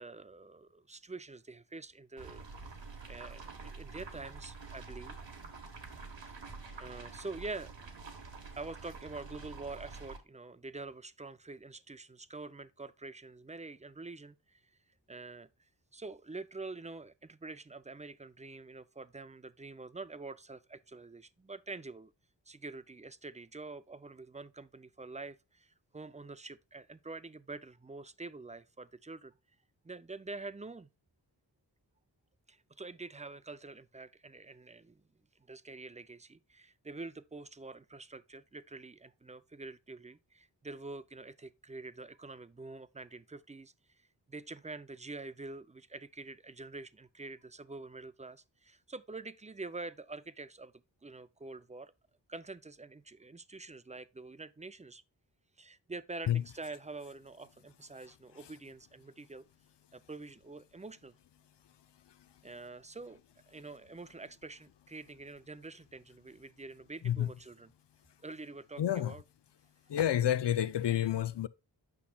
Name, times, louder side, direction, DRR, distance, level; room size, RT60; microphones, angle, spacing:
voice 1, 0.0-2.8 3.1-5.2 6.8-7.7 8.6-14.6 15.1-15.5 15.9-22.1 22.5-29.3 29.8-30.9 32.5-35.0 35.5-50.7 51.0-51.9 52.3-55.0 55.6-59.5 59.9-61.1 62.4-63.2 63.5-67.7 68.2-69.2, right 3 dB, 15° right, 0.5 m, -46 dB
sound 1, 2.2-10.2, right 4 dB, 80° right, 1.4 m, -47 dB
voice 2, 68.8-69.1 69.9-71.5, left 11 dB, 70° left, 0.6 m, -29 dB
8.4 x 5.7 x 2.3 m
wide cardioid pair, 55°, 43 cm